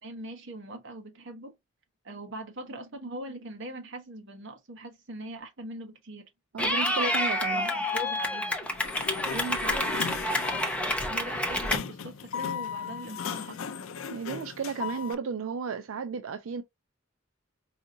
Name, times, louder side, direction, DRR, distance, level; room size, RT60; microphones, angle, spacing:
voice 1, 0.0-1.5 2.0-6.2 6.6-7.2 7.5-8.6 9.1-9.9 11.1-13.8, right 2 dB, 65° right, 1.1 m, -41 dB
voice 2, 6.5-7.7 14.1-16.6, right 5 dB, 85° right, 0.4 m, -33 dB
Clapping / Cheering, 6.6-11.8, left 1 dB, 5° left, 0.8 m, -28 dB
Sliding door, 8.6-15.1, left 7 dB, 80° left, 0.4 m, -37 dB
4.9 x 2.7 x 2.5 m
head